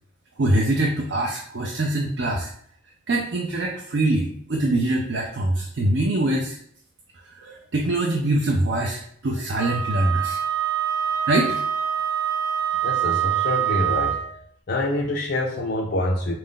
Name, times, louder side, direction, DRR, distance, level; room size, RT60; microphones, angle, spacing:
voice 1, 0.4-2.5 3.1-6.6 7.3-10.4 11.3-11.6, right 1 dB, 55° right, 0 dB, 0.5 m, -23 dB
Wind instrument woodwind instrument, 9.6-14.3, right 10 dB, 75° right, 0.9 m, -25 dB
voice 2, 12.8-14.2 14.7-16.4, left 1 dB, 50° left, -1 dB, 0.4 m, -25 dB
4.1 x 2.5 x 3.7 m, 0.64 s
head